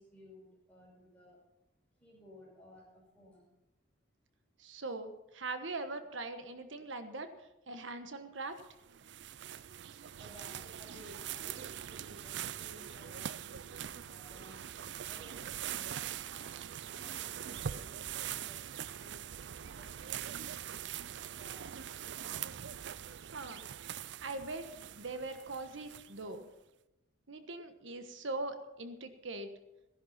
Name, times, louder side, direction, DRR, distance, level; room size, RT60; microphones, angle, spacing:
voice 1, 0.0-1.4 2.0-3.5 10.2-14.7 15.0-16.6 16.9-19.1 19.7-19.8 20.8-22.2, left 1 dB, 5° left, -3 dB, 6.1 m, -57 dB
voice 2, 4.6-7.3 7.7-8.6 23.3-23.6 24.2-24.7 24.9-26.5 27.3-29.5, right 2 dB, 75° right, 8 dB, 1.3 m, -41 dB
sound 1, 8.6-26.4, right 9 dB, 60° right, 0.4 m, -43 dB
15.5 x 11.0 x 5.7 m, 0.97 s
head